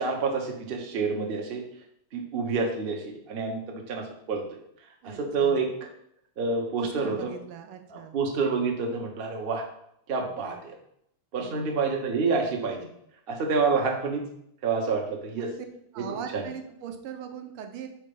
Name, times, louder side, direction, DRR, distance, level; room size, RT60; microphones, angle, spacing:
voice 1, 0.0-1.6 2.1-4.4 5.0-5.7 6.4-7.3 7.9-9.6 10.1-10.8 11.3-12.8 13.3-14.2 14.6-15.5 16.0-16.4, right 4 dB, 60° right, 2 dB, 0.6 m, -28 dB
voice 2, 5.0-5.6 6.8-8.2 11.4-11.7 15.4-15.5 15.9-17.9, right 8 dB, 85° right, 6 dB, 1.6 m, -40 dB
4.5 x 4.2 x 5.3 m, 0.73 s
omnidirectional pair, 2.4 m